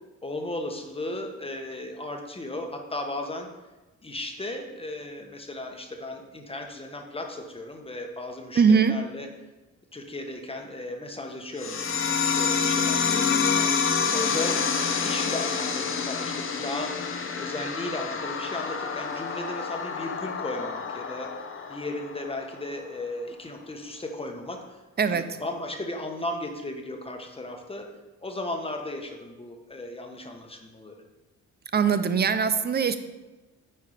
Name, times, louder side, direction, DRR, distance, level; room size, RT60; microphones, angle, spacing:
voice 1, 0.2-3.5 4.0-9.3 9.9-17.0 17.4-24.8 25.1-27.9 28.2-31.0, left 2 dB, 20° left, 3 dB, 1.3 m, -36 dB
voice 2, 8.6-9.0 25.0-25.3 31.7-33.0, right 6 dB, 35° right, 11 dB, 0.6 m, -21 dB
sound 1, 11.6-22.6, left 6 dB, 45° left, 1.0 m, -28 dB
8.9 x 4.7 x 5.0 m, 1.1 s
cardioid pair, 90°, 30 cm